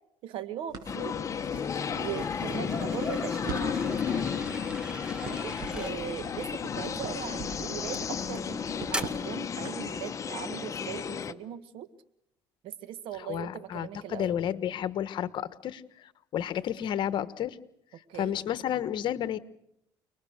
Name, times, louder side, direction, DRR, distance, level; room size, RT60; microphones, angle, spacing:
voice 1, 0.2-1.1 1.9-4.5 5.2-11.9 12.6-14.4 18.1-18.4, right 11 dB, 75° right, 13 dB, 1.6 m, -40 dB
Crackle, 0.7-9.9, right 4 dB, 50° right, 7.9 m, -44 dB
sound 1, 0.9-11.3, left 7 dB, 35° left, 1.0 m, -33 dB
sound 2, 1.4-6.0 6.9-7.2 7.9-8.4 8.9-9.0, equal, 10° right, 2.2 m, -41 dB
voice 2, 13.2-17.6 18.1-19.4, left 10 dB, 60° left, 14 dB, 1.2 m, -31 dB
29.5 x 20.5 x 6.6 m, 0.77 s
cardioid pair, 100°, 9 cm